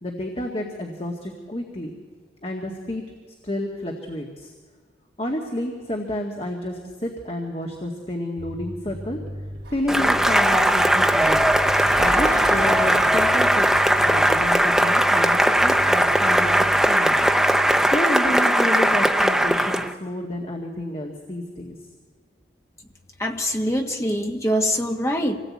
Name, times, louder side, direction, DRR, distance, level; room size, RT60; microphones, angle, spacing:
voice 1, 0.0-1.9 2.4-3.0 3.4-4.5 5.2-9.2 9.7-11.4 12.0-17.3 17.9-21.8, left 1 dB, 35° left, 1 dB, 1.9 m, -30 dB
Bass guitar, 8.4-18.0, equal, 45° right, 2.6 m, -38 dB
Sliding door, 9.6-14.6, right 1 dB, 90° right, 3.3 m, -37 dB
Cheering / Applause, 9.9-19.9, right 1 dB, ahead, 0.8 m, -19 dB
voice 2, 23.2-25.4, equal, 15° left, 3 dB, 1.6 m, -24 dB
26.0 x 18.0 x 8.6 m, 1.5 s
head